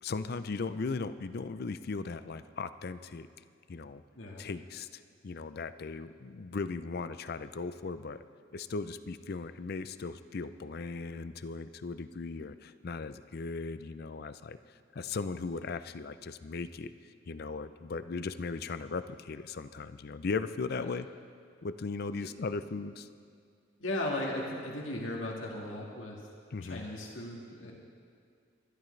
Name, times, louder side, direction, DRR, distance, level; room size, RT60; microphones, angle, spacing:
voice 1, 0.0-3.3 3.7-4.0 4.4-8.2 8.5-14.6 14.9-16.9 17.3-21.1 21.6-23.1 26.5-26.9, left 4 dB, 50° left, 12 dB, 0.5 m, -37 dB
voice 2, 23.8-26.2 26.6-27.7, left 1 dB, 85° left, -1 dB, 1.8 m, -37 dB
23.0 x 11.5 x 3.3 m, 2.3 s
head